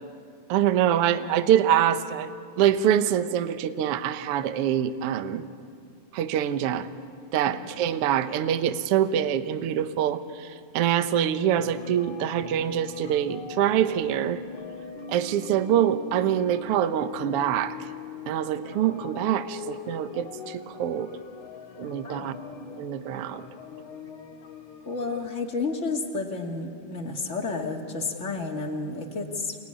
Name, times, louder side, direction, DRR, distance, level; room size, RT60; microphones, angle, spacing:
voice 1, 0.5-5.4 6.1-6.9 7.3-14.4 15.1-17.7 18.3-21.1 21.8-22.3 22.8-23.5, right 10 dB, 70° right, 10 dB, 1.4 m, -25 dB
sound 1, 11.6-25.3, left 6 dB, 65° left, 2.9 m, -41 dB
voice 2, 24.9-29.6, left 3 dB, 25° left, 2 dB, 2.0 m, -31 dB
28.5 x 20.0 x 9.9 m, 2.3 s
omnidirectional pair, 3.9 m